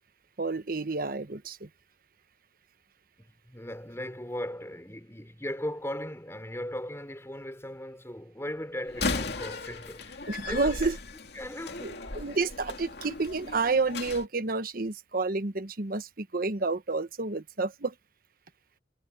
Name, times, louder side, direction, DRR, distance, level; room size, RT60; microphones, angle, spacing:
voice 1, 0.4-1.7 10.3-11.0 11.8-17.9, right 3 dB, 55° right, 1.2 m, -30 dB
voice 2, 3.2-10.9 11.3-11.9, left 1 dB, 15° left, 4.8 m, -38 dB
Slam, 8.9-14.2, left 3 dB, 65° left, 2.5 m, -36 dB
head